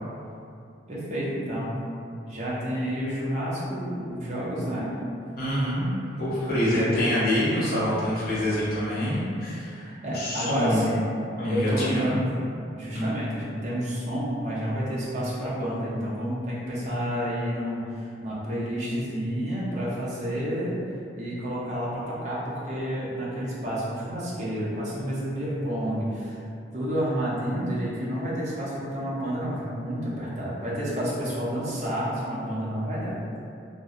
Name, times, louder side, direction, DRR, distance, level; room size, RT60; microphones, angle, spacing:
voice 1, 0.9-1.7 2.3-4.9 6.6-6.9 9.9-11.0 11.5-12.3 12.8-17.8 18.2-20.7 21.1-26.4 26.7-33.1, equal, 40° right, -7 dB, 0.5 m, -30 dB
voice 2, 5.4-5.9 6.2-9.9 10.1-10.9 11.4-12.2 12.9-13.2, left 1 dB, 50° left, -10 dB, 0.8 m, -26 dB
2.4 x 2.1 x 2.7 m, 2.5 s
head